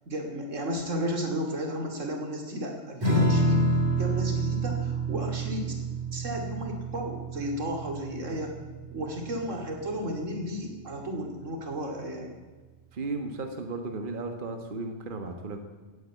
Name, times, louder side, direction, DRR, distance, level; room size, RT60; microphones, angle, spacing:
voice 1, 0.1-5.7 6.1-8.5 8.9-12.4, equal, 85° right, 3 dB, 2.9 m, -33 dB
Strum, 3.0-9.9, right 1 dB, 20° right, 5.9 m, -28 dB
voice 2, 12.9-15.6, right 3 dB, 45° right, 5 dB, 1.5 m, -35 dB
17.0 x 9.1 x 8.3 m, 1.3 s
omnidirectional pair, 1.3 m